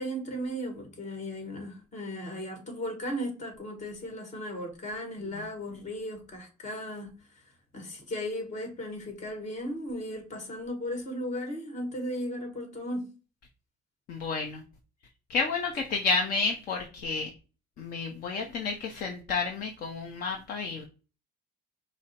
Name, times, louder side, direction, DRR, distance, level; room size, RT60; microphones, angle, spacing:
voice 1, 0.0-7.1 7.7-13.1, equal, 45° left, 1.7 m, -36 dB
voice 2, 14.1-14.6 15.3-17.3 17.8-20.8, left 4 dB, 60° left, 0.8 m, -30 dB
4.9 x 2.1 x 4.2 m
cardioid pair, 110°, 17 cm